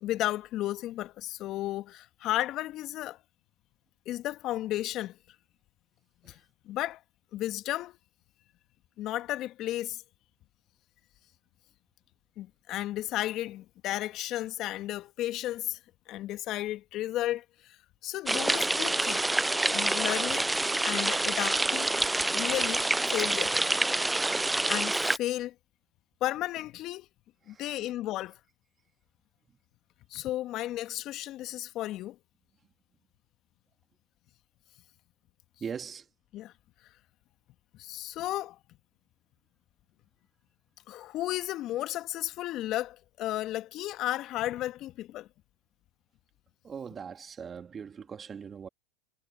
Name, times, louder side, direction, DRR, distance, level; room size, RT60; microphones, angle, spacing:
voice 1, 0.0-3.2 4.1-5.2 6.2-6.4 6.7-7.0 7.3-8.0 9.0-10.0 12.4-15.8 16.1-19.3 19.7-20.5 20.8-21.9 22.3-23.6 24.2-24.3 24.6-25.5 26.2-27.1 27.5-28.4 30.1-32.2 36.3-36.5 37.8-38.6 40.9-45.3, left 14 dB, 50° left, 1.7 m, -33 dB
sound 1, 18.3-25.2, right 2 dB, 10° right, 0.5 m, -27 dB
voice 2, 27.5-27.9 35.6-36.1 46.6-48.7, right 6 dB, 30° right, 3.0 m, -41 dB
hypercardioid pair, 90°, 0 cm